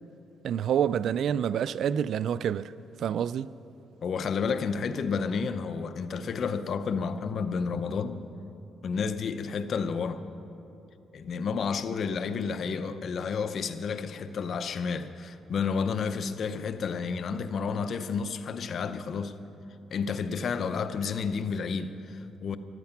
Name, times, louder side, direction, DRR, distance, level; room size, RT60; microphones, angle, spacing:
voice 1, 0.4-2.7 3.0-3.5, right 9 dB, 70° right, 0.3 m, -27 dB
voice 2, 4.0-8.2 8.8-10.2 11.1-19.4 19.9-22.6, left 5 dB, 55° left, 0.7 m, -31 dB
14.0 x 12.5 x 5.9 m
cardioid pair, 90°, 0 cm